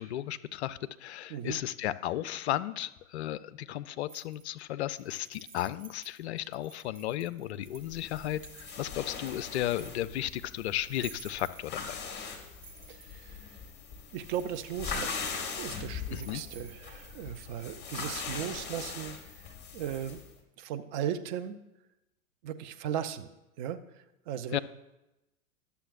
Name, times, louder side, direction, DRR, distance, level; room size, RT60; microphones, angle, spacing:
voice 1, 0.0-12.0 16.1-16.4 24.5-24.6, left 13 dB, 55° left, 15 dB, 0.4 m, -34 dB
sound 1, 4.1-4.6 4.9-10.2 10.8-12.0 12.4-13.2 14.1-16.8, right 6 dB, 65° right, 1.1 m, -53 dB
sound 2, 7.8-20.3, left 5 dB, 25° left, 1.4 m, -41 dB
voice 2, 12.9-13.6 14.1-19.5 19.7-20.2 20.6-21.6 22.4-23.3 23.6-24.6, right 9 dB, 35° right, 10 dB, 0.5 m, -37 dB
11.5 x 6.9 x 2.5 m, 0.93 s
figure-of-eight pair, 100°, 42 cm